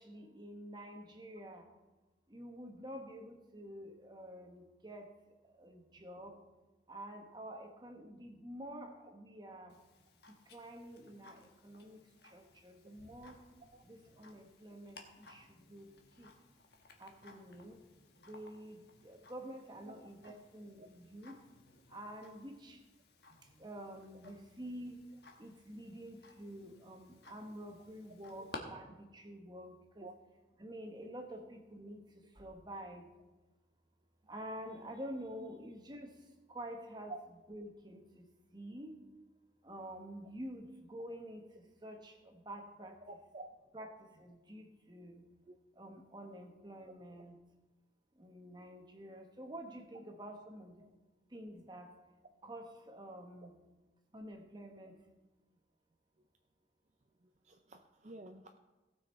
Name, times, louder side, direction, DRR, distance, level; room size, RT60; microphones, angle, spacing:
voice 1, 0.0-1.6 2.3-5.1 5.6-6.4 6.9-9.8 10.5-13.4 13.8-15.9 16.2-16.3 17.0-17.8 18.2-21.4 21.9-22.8 23.6-25.0 25.4-30.1 30.6-33.1 34.3-36.1 36.5-37.1 37.5-38.2 38.5-38.9 39.6-41.5 41.8-43.0 43.7-43.9 44.2-45.2 45.8-47.4 48.2-50.8 51.3-51.9 52.4-53.5 54.1-54.9, equal, 25° right, 4 dB, 1.2 m, -48 dB
Tick-tock, 9.7-28.6, left 3 dB, 65° left, 1.4 m, -58 dB
voice 2, 43.0-43.5 45.5-45.6 57.4-58.6, right 2 dB, 40° right, 4 dB, 0.6 m, -50 dB
17.5 x 6.3 x 4.3 m, 1.1 s
head